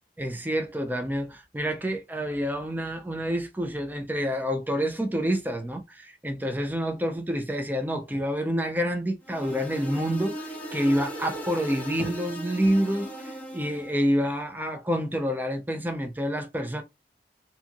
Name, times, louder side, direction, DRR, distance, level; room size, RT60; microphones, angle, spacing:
voice 1, 0.2-16.8, equal, 10° right, 0.4 m, -28 dB
sound 1, 9.2-14.0, equal, 10° left, 0.8 m, -37 dB
2.7 x 2.5 x 2.5 m
head